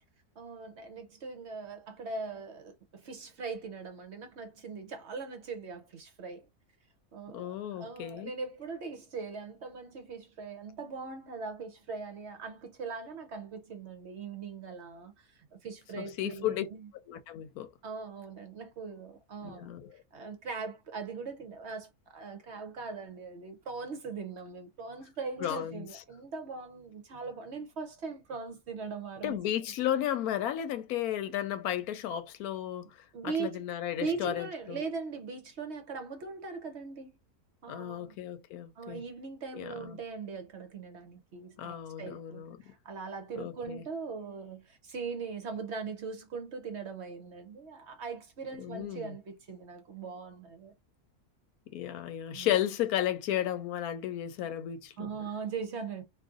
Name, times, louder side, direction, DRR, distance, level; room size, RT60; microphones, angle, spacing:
voice 1, 0.4-6.4 7.1-16.9 17.8-19.7 20.1-29.4 33.1-33.6 34.0-37.2 37.6-38.1 38.8-50.7 52.3-52.5 55.0-56.0, right 4 dB, 60° right, 0.8 m, -40 dB
voice 2, 7.3-8.3 16.0-16.7 17.1-17.7 19.4-20.0 25.4-25.9 29.2-34.8 37.7-39.0 39.5-40.0 41.6-42.7 43.3-43.8 48.6-49.1 51.7-55.1, left 11 dB, 85° left, 1.1 m, -34 dB
2.6 x 2.5 x 3.7 m
omnidirectional pair, 1.6 m